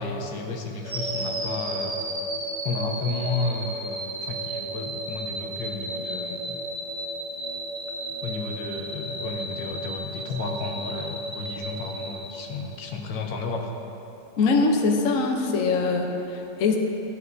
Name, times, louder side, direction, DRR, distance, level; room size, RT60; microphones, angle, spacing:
voice 1, 0.0-1.9 2.6-6.6 8.2-13.7, left 3 dB, 70° left, 2 dB, 1.4 m, -32 dB
sound 1, 0.8-13.0, right 1 dB, 65° right, 2.1 m, -33 dB
voice 2, 14.4-16.8, left 4 dB, 55° left, 1 dB, 0.9 m, -22 dB
14.5 x 9.4 x 2.7 m, 3.0 s
omnidirectional pair, 2.2 m